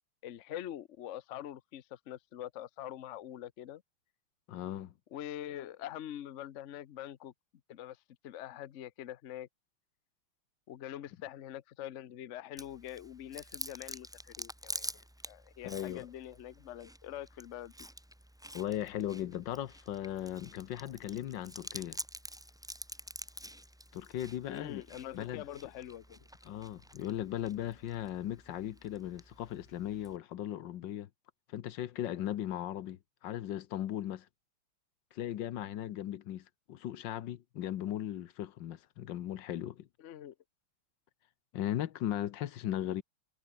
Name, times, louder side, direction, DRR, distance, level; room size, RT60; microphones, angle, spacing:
voice 1, 0.2-3.8 5.1-7.3 7.7-8.0 8.2-9.5 10.7-17.7 24.5-26.3 40.0-40.3, left 11 dB, 85° left, 0.6 m, -44 dB
voice 2, 4.5-4.9 15.6-16.1 18.5-22.0 23.9-24.8 25.1-25.4 26.4-31.1 31.5-34.3 35.1-39.9 41.5-43.0, left 12 dB, 65° left, 1.5 m, -37 dB
Chewing mastication, 12.6-30.2, equal, 5° right, 0.4 m, -48 dB
omnidirectional pair, 2.4 m